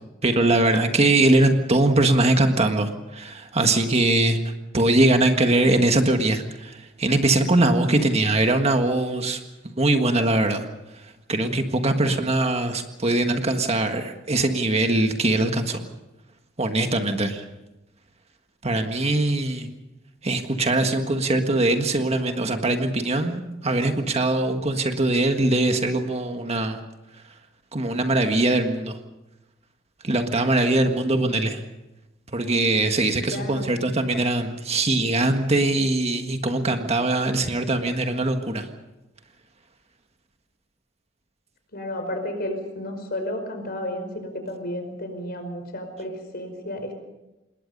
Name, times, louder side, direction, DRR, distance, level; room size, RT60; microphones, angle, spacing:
voice 1, 0.2-4.4 4.7-10.7 10.9-15.8 16.6-17.4 18.6-19.7 20.2-26.8 27.7-29.0 30.0-31.6 32.3-38.7, right 2 dB, 35° right, 6 dB, 1.7 m, -22 dB
voice 2, 33.3-33.8 41.7-46.9, left 1 dB, 50° left, 6 dB, 5.0 m, -32 dB
27.0 x 21.0 x 5.5 m, 1.0 s
head